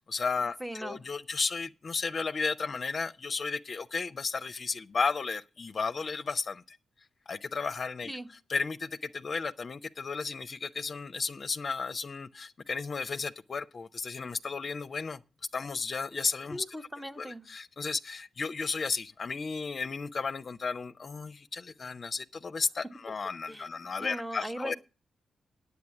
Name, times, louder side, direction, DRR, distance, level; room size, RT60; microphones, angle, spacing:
voice 1, 0.0-6.8 7.3-8.1 8.5-15.2 15.5-16.6 17.2-24.7, left 4 dB, 50° left, 0.6 m, -34 dB
voice 2, 0.6-1.0 8.1-8.3 16.5-17.5 23.5-24.8, equal, 5° right, 1.2 m, -39 dB
9.5 x 8.2 x 7.0 m
hypercardioid pair, 40°, 0 cm